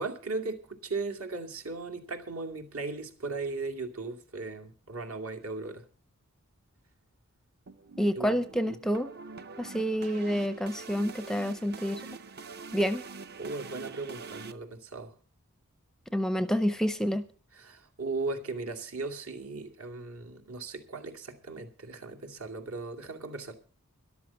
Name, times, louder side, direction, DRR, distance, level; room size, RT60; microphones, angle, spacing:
voice 1, 0.0-5.9 8.2-8.3 8.7-8.8 12.0-12.2 13.4-15.1 17.5-23.5, right 3 dB, 70° right, 4 dB, 2.4 m, -37 dB
sound 1, 7.7-14.5, right 4 dB, 45° right, 0.7 m, -44 dB
voice 2, 8.0-9.1 9.6-12.0 12.7-13.0 16.1-17.2, equal, ahead, 11 dB, 0.5 m, -28 dB
13.0 x 11.5 x 5.8 m, 0.40 s
head